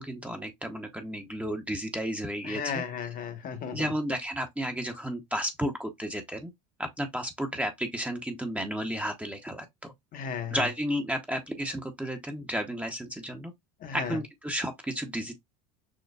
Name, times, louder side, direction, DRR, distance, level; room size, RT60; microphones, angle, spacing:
voice 1, 0.0-2.8 3.7-6.5 6.8-9.9 10.5-13.5 13.9-15.3, equal, 5° right, 0.7 m, -32 dB
voice 2, 2.4-3.8 10.1-10.7 13.8-14.2, left 7 dB, 45° left, 1.0 m, -34 dB
6.4 x 2.2 x 2.2 m
supercardioid pair, 100°, 20 cm